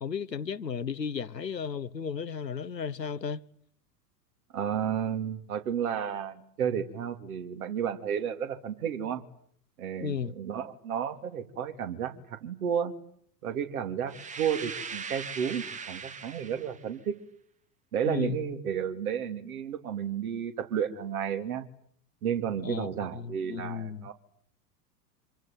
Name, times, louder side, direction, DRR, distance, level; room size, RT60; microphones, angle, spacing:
voice 1, 0.0-3.4 10.0-10.3 18.0-18.5 22.6-24.1, left 6 dB, 85° left, 1.2 m, -34 dB
voice 2, 4.5-9.2 9.8-12.9 13.4-17.2 17.9-21.6 22.2-24.1, right 8 dB, 60° right, 3.2 m, -32 dB
sound 1, 14.1-16.9, right 5 dB, 15° right, 1.3 m, -40 dB
27.0 x 23.5 x 9.0 m
figure-of-eight pair, 90°, 49 cm